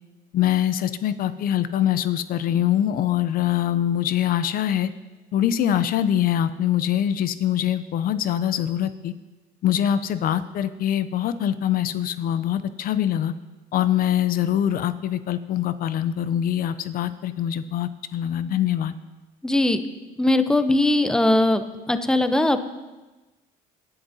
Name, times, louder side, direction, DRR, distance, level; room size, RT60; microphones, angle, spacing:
voice 1, 0.3-4.9 5.3-9.1 9.6-13.3 13.7-18.9, left 10 dB, 60° left, 13 dB, 0.5 m, -23 dB
voice 2, 19.4-19.8 20.2-21.6 21.9-22.6, left 1 dB, 5° left, 9 dB, 0.6 m, -20 dB
18.0 x 9.7 x 2.7 m, 1.1 s
cardioid pair, 110°, 17 cm